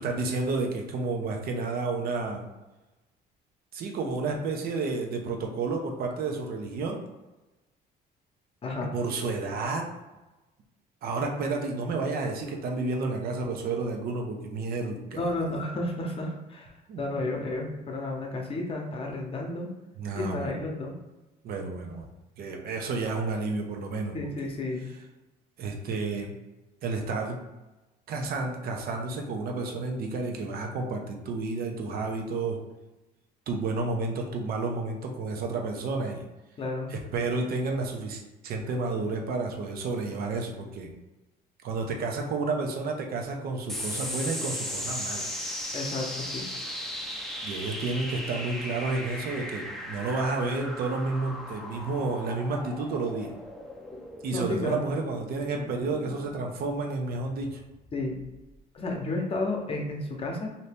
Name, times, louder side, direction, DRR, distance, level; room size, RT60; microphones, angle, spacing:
voice 1, 0.0-2.4 3.7-7.0 8.9-9.9 11.0-15.5 16.9-17.0 20.0-20.6 21.4-22.1 22.4-24.2 25.6-26.3 26.8-27.4 28.1-32.6 33.5-36.2 36.9-40.9 41.6-45.3 47.4-53.3 54.2-57.6, right 3 dB, 65° right, 2 dB, 0.7 m, -31 dB
voice 2, 8.6-8.9 15.1-19.7 20.1-21.0 24.1-24.9 36.6-36.9 45.7-46.5 53.9-54.0 54.3-54.9 57.9-58.2 58.7-60.5, left 2 dB, 35° left, 1 dB, 0.8 m, -32 dB
sound 1, 43.7-58.5, equal, ahead, 0.6 m, -38 dB
2.8 x 2.7 x 3.4 m, 1.1 s
cardioid pair, 110°, 17 cm